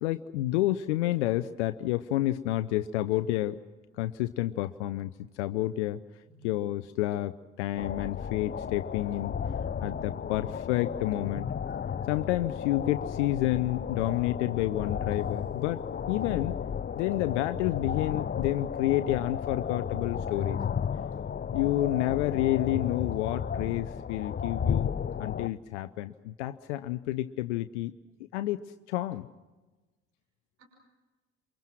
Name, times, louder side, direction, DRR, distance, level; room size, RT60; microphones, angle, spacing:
voice 1, 0.0-3.6 4.0-6.0 6.4-9.3 9.8-11.5 12.1-16.6 16.9-20.6 21.5-24.9 25.2-27.9 28.3-29.3, left 15 dB, 75° left, 11 dB, 0.7 m, -29 dB
voice 2, 6.2-6.7 8.4-8.5 8.8-8.9 9.5-10.9 11.7-11.9 30.6-30.7, right 3 dB, 85° right, 0 dB, 5.9 m, -52 dB
sound 1, 7.8-25.5, left 7 dB, 30° left, 0.8 m, -33 dB
28.5 x 24.0 x 6.2 m, 1.2 s
figure-of-eight pair, 45°, 34 cm